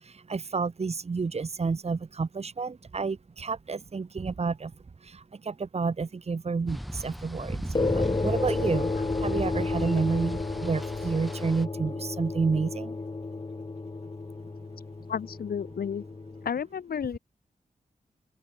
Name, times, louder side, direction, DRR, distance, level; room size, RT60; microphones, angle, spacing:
voice 1, 0.3-4.7 5.4-7.6 7.9-8.9 9.2-12.9, right 4 dB, 45° right, 2.0 m, -30 dB
sound 1, 6.7-11.6, equal, ahead, 3.8 m, -36 dB
sound 2, 7.7-16.5, left 3 dB, 30° left, 2.1 m, -32 dB
voice 2, 15.1-16.0 16.4-17.2, left 7 dB, 85° left, 1.8 m, -32 dB
open air
wide cardioid pair, 110°, 15 cm